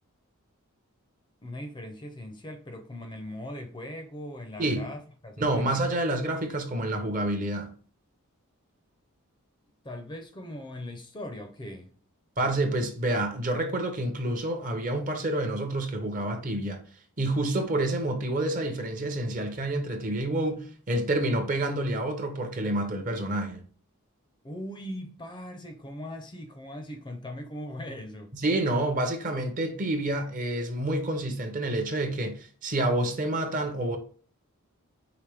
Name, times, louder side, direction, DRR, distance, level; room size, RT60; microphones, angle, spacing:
voice 1, 1.4-5.7 9.8-11.9 24.4-28.4, left 1 dB, 20° left, 0.5 m, -40 dB
voice 2, 4.6-4.9 5.4-7.7 12.4-16.8 17.2-23.6 28.3-34.0, right 1 dB, 35° right, 0.7 m, -28 dB
4.9 x 3.0 x 3.4 m
head